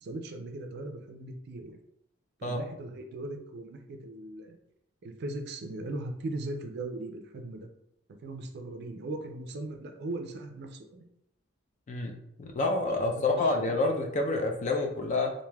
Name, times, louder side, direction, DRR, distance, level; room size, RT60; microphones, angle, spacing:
voice 1, 0.0-1.8 2.4-4.6 5.0-7.7 8.2-11.1 13.0-13.7, right 2 dB, 55° right, 5 dB, 0.4 m, -39 dB
voice 2, 12.4-15.3, left 2 dB, 35° left, 2 dB, 0.4 m, -28 dB
3.3 x 2.5 x 2.2 m, 0.76 s
head